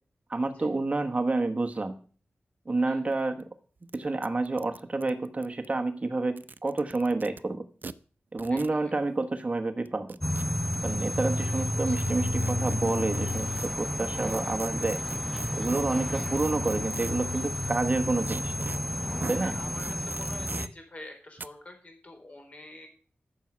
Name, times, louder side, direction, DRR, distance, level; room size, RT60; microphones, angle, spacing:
voice 1, 0.3-2.0 2.7-3.4 3.9-7.6 8.3-10.1 10.8-15.0 15.5-18.7 19.3-19.5, right 2 dB, 35° right, 6 dB, 1.2 m, -29 dB
sound 1, 3.1-3.2 3.4-3.5 3.9-4.0 4.2-5.7 6.3-7.4 7.8-7.9 8.4-8.7 9.8-10.8 11.9-13.7 14.3-17.3 18.2-18.8 19.2-19.4 19.8-20.7 21.4-21.5, right 4 dB, 50° right, 0.6 m, -42 dB
voice 2, 8.5-8.9 11.4-12.2 14.1-14.6 16.3-16.5 19.1-22.9, left 2 dB, 35° left, 3 dB, 4.3 m, -48 dB
sound 2, 10.2-20.7, left 1 dB, 5° left, 0.8 m, -31 dB
14.0 x 7.1 x 6.3 m, 0.40 s
wide cardioid pair, 105°, 4 cm